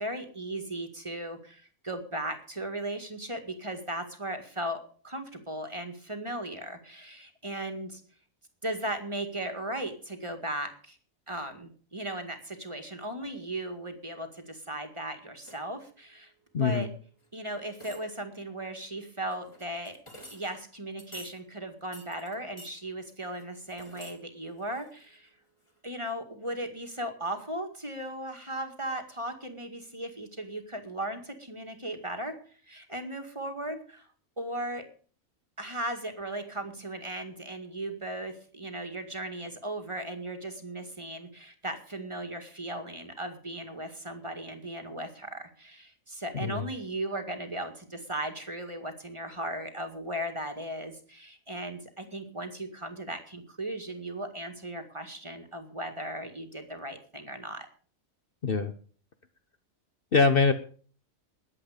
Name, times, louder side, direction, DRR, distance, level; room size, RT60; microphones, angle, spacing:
voice 1, 0.0-8.0 8.6-11.0 11.3-16.3 16.6-16.9 17.3-20.0 20.3-25.3 25.8-32.4 32.7-34.1 34.4-34.9 35.6-57.7, right 1 dB, 20° right, 5 dB, 2.0 m, -37 dB
sound 1, 15.4-15.8 17.2-17.3 17.7-18.3 19.3-20.6 21.0-21.4 21.9-22.8 23.2-24.2 24.5-25.3 25.7-25.8, equal, 20° left, 2.7 m, -50 dB
voice 2, 16.5-16.9 46.3-46.7 58.4-58.7 60.1-60.5, left 4 dB, 45° left, 9 dB, 1.1 m, -23 dB
21.0 x 8.1 x 5.1 m, 0.43 s
omnidirectional pair, 1.4 m